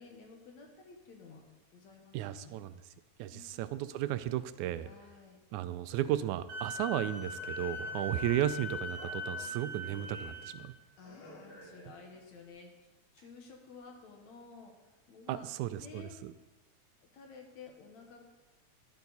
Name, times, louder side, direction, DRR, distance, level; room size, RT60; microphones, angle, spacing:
voice 1, 0.0-1.4 1.7-2.6 3.2-3.7 4.8-5.4 11.0-12.7 13.1-15.5 15.7-16.1 17.0-18.2, left 4 dB, 70° left, 2 dB, 2.6 m, -53 dB
voice 2, 2.1-2.8 3.2-4.9 5.5-10.7 15.3-16.3, right 12 dB, 85° right, 14 dB, 1.9 m, -34 dB
Wind instrument woodwind instrument, 6.5-10.5, left 2 dB, 55° right, 1.9 m, -40 dB
Speech, 7.2-12.2, left 1 dB, 55° left, 4.0 m, -53 dB
11.5 x 10.5 x 4.1 m, 1.1 s
omnidirectional pair, 3.4 m